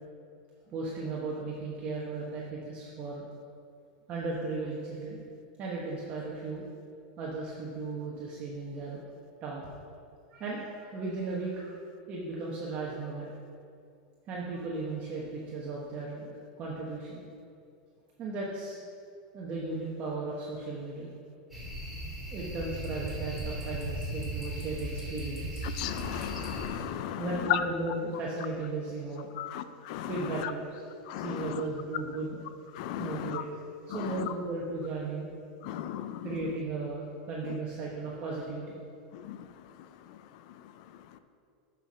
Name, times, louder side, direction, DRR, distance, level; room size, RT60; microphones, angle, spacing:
voice 1, 0.7-3.3 4.1-5.2 5.6-6.6 7.2-9.0 9.4-9.7 10.3-11.7 12.1-13.3 14.3-16.3 16.6-17.2 18.2-18.8 19.3-21.1 22.3-25.6 27.2-29.3 30.1-30.8 31.1-32.4 33.0-33.5 33.9-35.3 36.2-38.8, right 3 dB, 30° right, 1.2 m, -36 dB
sound 1, 21.5-26.7, right 1 dB, 5° right, 1.9 m, -37 dB
voice 2, 25.8-27.2 27.5-27.6 29.4-30.1 31.1-31.6 32.8-33.4 34.0-34.1 35.6-36.2 39.3-39.4, left 12 dB, 55° left, 0.5 m, -34 dB
6.4 x 5.7 x 6.2 m
supercardioid pair, 150°, 4 cm